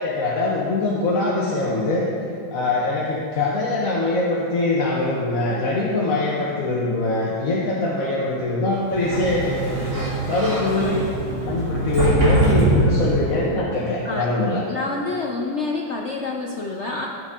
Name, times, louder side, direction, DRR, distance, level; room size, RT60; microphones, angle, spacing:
voice 1, 0.0-2.1 2.5-11.1 11.4-14.6, left 2 dB, 50° left, -5 dB, 1.5 m, -23 dB
Sliding door, 8.8-13.5, right 1 dB, 50° right, 3.1 m, -23 dB
voice 2, 14.7-17.1, left 3 dB, 70° left, 0 dB, 0.6 m, -27 dB
15.0 x 8.3 x 3.8 m, 2.5 s
omnidirectional pair, 2.1 m